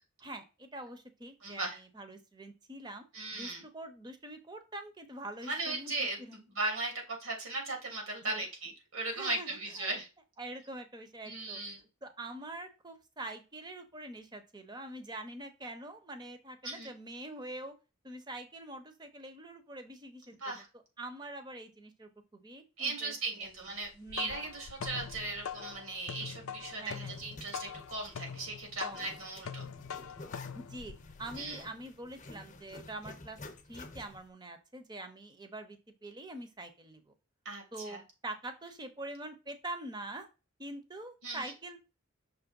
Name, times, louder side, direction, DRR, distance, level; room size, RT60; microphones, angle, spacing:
voice 1, 0.2-3.0 3.3-6.4 8.2-8.4 9.1-10.0 10.4-11.6 12.0-17.7 18.0-20.4 21.0-23.5 23.9-24.4 26.7-27.2 28.8-29.1 30.5-30.9 31.2-33.4 33.7-37.1 37.7-40.3 40.6-41.8, right 1 dB, 20° right, 8 dB, 0.8 m, -45 dB
voice 2, 1.4-1.8 3.1-3.6 5.4-6.2 6.5-10.1 11.2-11.8 16.6-16.9 20.4-20.7 22.8-29.7 31.4-31.6 37.4-38.0 41.2-41.5, right 2 dB, 85° right, 0 dB, 3.2 m, -37 dB
sound 1, 23.8-31.6, left 7 dB, 80° left, 0.5 m, -43 dB
Zipper (clothing), 27.0-34.3, left 2 dB, 35° left, 0.8 m, -51 dB
5.9 x 3.3 x 5.2 m, 0.30 s
head